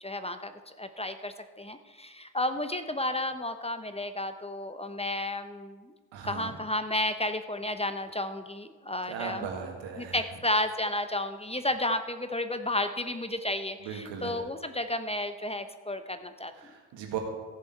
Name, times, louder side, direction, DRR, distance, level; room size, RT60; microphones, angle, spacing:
voice 1, 0.0-5.9 6.2-9.5 10.0-16.5, left 1 dB, 15° left, 9 dB, 0.8 m, -32 dB
voice 2, 6.1-6.6 9.1-10.2 13.8-14.4 16.6-17.2, right 7 dB, 90° right, 2 dB, 1.7 m, -37 dB
15.0 x 7.1 x 4.5 m, 1.4 s
supercardioid pair, 50°, 43 cm